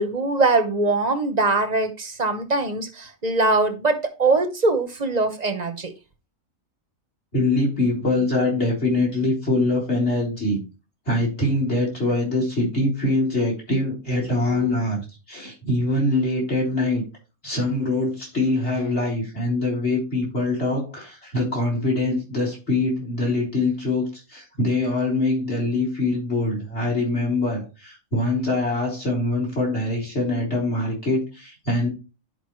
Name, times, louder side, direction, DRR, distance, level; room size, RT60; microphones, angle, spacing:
voice 1, 0.0-5.9, right 3 dB, 35° right, 1.0 m, -22 dB
voice 2, 7.3-10.6 11.1-17.0 17.4-31.9, left 2 dB, 55° left, 4.0 m, -23 dB
11.0 x 5.1 x 3.1 m
omnidirectional pair, 1.4 m